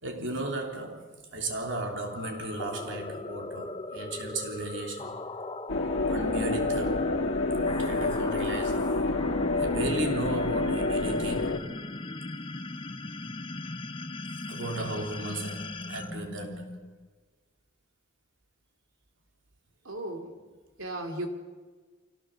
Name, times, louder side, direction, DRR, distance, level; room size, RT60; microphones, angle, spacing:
voice 1, 0.0-5.2 6.1-7.1 7.6-8.9 9.6-11.7 14.5-16.7, right 2 dB, 60° right, 3.4 m, -35 dB
sound 1, 1.9-17.1, left 2 dB, 25° left, 0.8 m, -39 dB
sound 2, 5.7-11.6, left 2 dB, 75° left, 1.5 m, -28 dB
voice 2, 19.8-20.5 20.8-21.3, right 1 dB, 80° right, 2.9 m, -36 dB
25.5 x 17.0 x 7.0 m
head